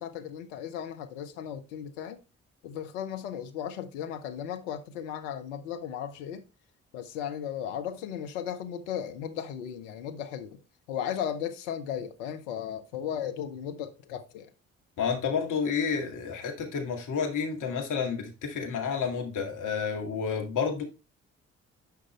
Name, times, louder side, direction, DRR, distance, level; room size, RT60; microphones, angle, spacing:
voice 1, 0.0-2.2 2.6-6.4 6.9-10.6 10.9-14.5, left 9 dB, 75° left, 1.1 m, -36 dB
voice 2, 15.0-20.8, left 6 dB, 55° left, 2.2 m, -30 dB
10.5 x 5.2 x 3.2 m
figure-of-eight pair, 45°, 36 cm